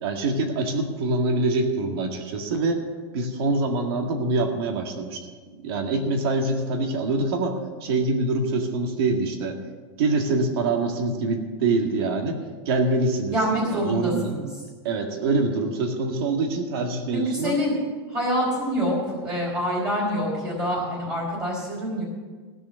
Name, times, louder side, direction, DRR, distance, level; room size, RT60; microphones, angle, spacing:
voice 1, 0.0-2.8 3.1-5.3 5.6-9.6 10.0-13.4 13.9-14.3 14.8-17.6, right 3 dB, 60° right, 4 dB, 2.0 m, -25 dB
voice 2, 13.3-14.5 17.1-17.7 18.1-22.0, equal, 25° right, -4 dB, 3.7 m, -26 dB
16.0 x 6.9 x 7.5 m, 1.4 s
supercardioid pair, 160°, 15 cm